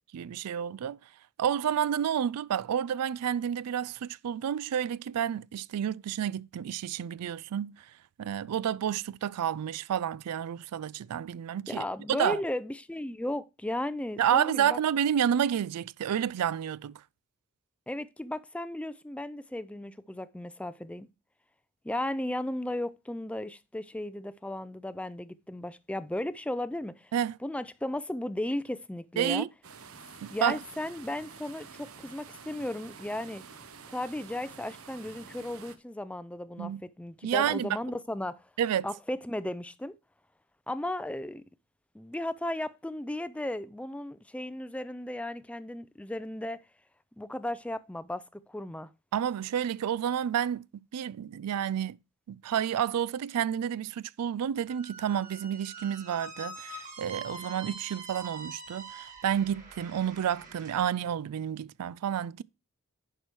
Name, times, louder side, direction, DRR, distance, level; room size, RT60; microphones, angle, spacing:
voice 1, 0.1-1.0 1.4-7.9 8.2-11.8 12.1-12.4 14.2-17.0 27.1-27.4 29.2-29.5 30.2-30.6 36.6-36.8 37.2-37.8 38.6-38.9 49.1-50.7 50.9-52.0 52.3-62.4, right 9 dB, 90° right, 0.4 m, -30 dB
voice 2, 11.7-14.8 17.9-21.1 21.8-27.1 27.4-29.5 30.3-33.4 33.9-38.5 38.8-39.9 40.7-41.4 41.9-46.6 47.2-48.9, left 1 dB, 5° left, 0.3 m, -35 dB
sound 1, 29.6-35.8, right 5 dB, 65° right, 0.9 m, -49 dB
Squeak, 54.7-60.8, right 3 dB, 35° right, 2.5 m, -44 dB
11.0 x 4.7 x 4.6 m
head